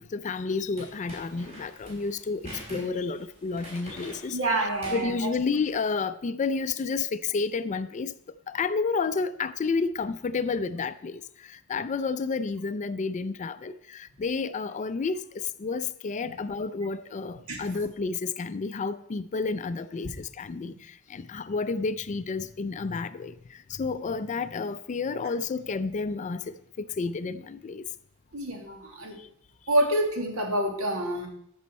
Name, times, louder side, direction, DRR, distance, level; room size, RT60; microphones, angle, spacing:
voice 1, 0.0-2.4 2.7-4.4 4.9-8.1 8.5-11.2 11.5-20.7 21.1-23.3 23.7-26.4 26.8-27.8, left 4 dB, 35° left, 0.4 m, -30 dB
sound 1, 0.8-5.8, equal, 30° right, 4.0 m, -45 dB
voice 2, 4.3-5.3 16.2-16.3 17.5-17.6 20.7-20.8 28.3-29.2 29.7-31.3, right 1 dB, 70° right, 2.0 m, -27 dB
14.0 x 6.3 x 4.2 m
head